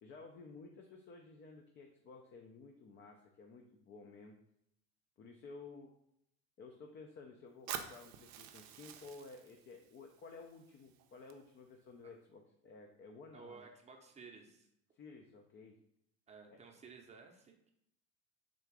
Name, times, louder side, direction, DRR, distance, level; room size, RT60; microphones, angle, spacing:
voice 1, 0.0-4.4 5.2-5.9 6.6-13.7 14.9-15.8 16.5-16.6, left 4 dB, 35° left, 2 dB, 0.5 m, -54 dB
Fire, 7.7-11.7, right 9 dB, 60° right, 0.5 m, -49 dB
voice 2, 13.3-14.7 16.3-17.7, right 5 dB, 20° right, 3 dB, 0.7 m, -55 dB
3.8 x 2.4 x 4.6 m, 0.76 s
supercardioid pair, 110°, 30 cm